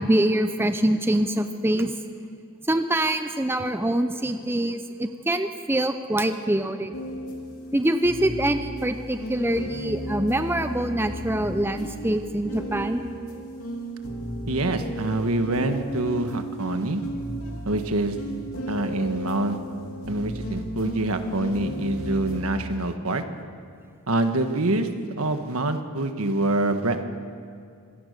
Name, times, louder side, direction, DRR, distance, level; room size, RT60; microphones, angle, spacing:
voice 1, 0.0-1.9 2.7-6.9 7.7-13.1, right 1 dB, 10° right, 8 dB, 0.6 m, -24 dB
sound 1, 6.9-22.4, equal, 75° left, 3.2 m, -34 dB
voice 2, 14.5-17.0 17.6-18.1 18.7-19.6 20.1-23.2 24.1-24.9 25.2-27.1, right 2 dB, 80° right, 7 dB, 1.5 m, -25 dB
25.5 x 17.5 x 6.7 m, 2.3 s
head